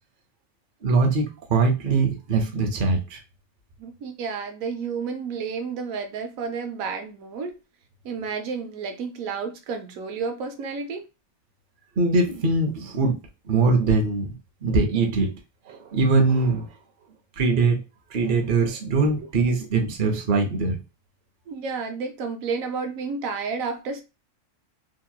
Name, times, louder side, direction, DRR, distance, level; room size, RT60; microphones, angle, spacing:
voice 1, 0.8-3.2 12.0-13.2 13.5-14.3 14.6-15.3 15.7-16.7 17.4-17.8 18.1-20.8, right 3 dB, 45° right, 0.8 m, -22 dB
voice 2, 3.8-7.6 8.0-11.0 21.5-24.0, right 5 dB, 85° right, 1.0 m, -31 dB
2.9 x 2.8 x 2.3 m
omnidirectional pair, 1.4 m